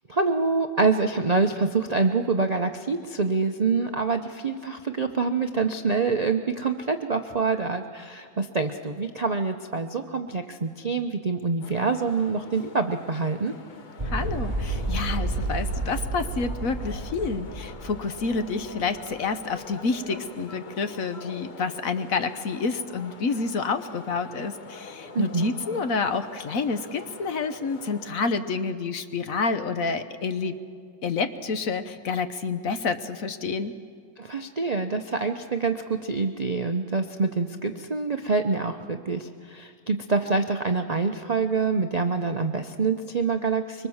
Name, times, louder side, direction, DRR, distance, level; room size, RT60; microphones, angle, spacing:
voice 1, 0.1-13.5 25.1-25.5 34.2-43.9, right 4 dB, 70° right, 5 dB, 0.3 m, -26 dB
sound 1, 11.6-28.1, left 3 dB, 40° left, 0.7 m, -45 dB
sound 2, 14.0-19.2, right 2 dB, 20° right, 2.5 m, -31 dB
voice 2, 14.1-30.6 31.0-33.7, left 4 dB, 55° left, 9 dB, 1.2 m, -28 dB
25.0 x 23.0 x 7.2 m, 2.1 s
omnidirectional pair, 1.9 m